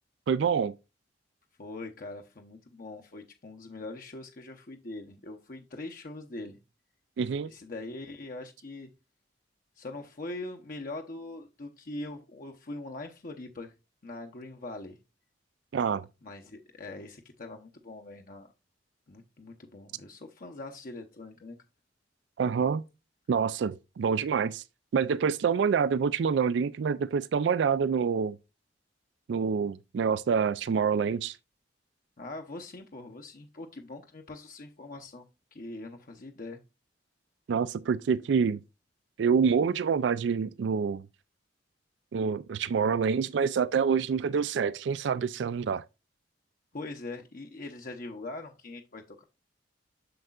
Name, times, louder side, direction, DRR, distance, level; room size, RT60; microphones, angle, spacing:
voice 1, 0.3-0.7 7.2-7.5 15.7-16.1 22.4-22.8 23.3-24.6 24.9-28.4 29.3-31.4 37.5-38.6 39.2-41.1 42.1-45.8, right 6 dB, 70° right, 0.3 m, -27 dB
voice 2, 1.6-6.6 7.4-8.9 9.8-13.7 14.0-15.0 16.2-18.5 19.1-21.6 32.2-36.6 46.7-49.2, left 2 dB, 50° left, 0.8 m, -42 dB
7.8 x 6.6 x 2.4 m
head